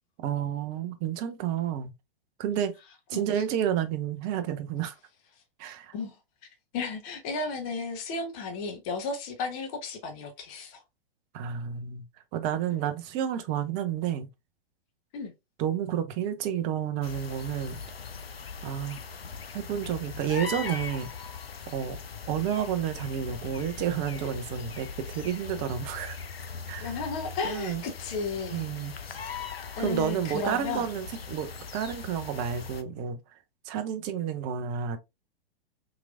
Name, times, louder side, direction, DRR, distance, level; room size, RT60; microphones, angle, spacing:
voice 1, 0.2-1.9 2.4-2.7 3.1-4.9 5.6-5.9 11.3-12.0 12.3-14.3 15.6-17.8 18.6-19.0 19.5-21.1 21.7-22.0 22.3-26.2 26.7-26.9 27.4-27.8 28.5-28.9 29.8-33.2 33.7-35.0, right 9 dB, 25° right, 0.5 m, -30 dB
voice 2, 3.1-3.4 5.9-6.1 6.7-10.8 12.7-12.8 15.1-15.3 26.8-29.2 29.7-30.9, left 4 dB, 35° left, 1.0 m, -34 dB
sound 1, 17.0-32.8, left 5 dB, 90° left, 0.5 m, -40 dB
3.8 x 2.9 x 2.4 m
figure-of-eight pair, 105°, 29 cm